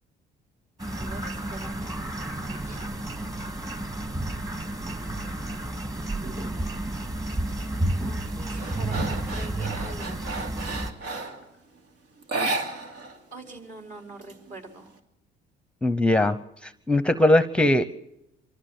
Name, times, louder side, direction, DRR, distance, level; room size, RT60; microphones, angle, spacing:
sound 1, 0.8-10.9, right 1 dB, 20° right, 2.6 m, -31 dB
voice 1, 0.9-2.9 8.0-10.5 13.3-14.9, right 2 dB, 45° right, 4 dB, 4.7 m, -44 dB
sound 2, 7.3-7.6 8.0-11.5 12.2-13.2 13.4-13.5 13.9-14.9, right 2 dB, 85° right, 2.8 m, -33 dB
voice 2, 15.8-17.8, left 1 dB, 5° left, 13 dB, 0.8 m, -21 dB
25.5 x 14.5 x 7.3 m, 0.88 s
cardioid pair, 110°, 17 cm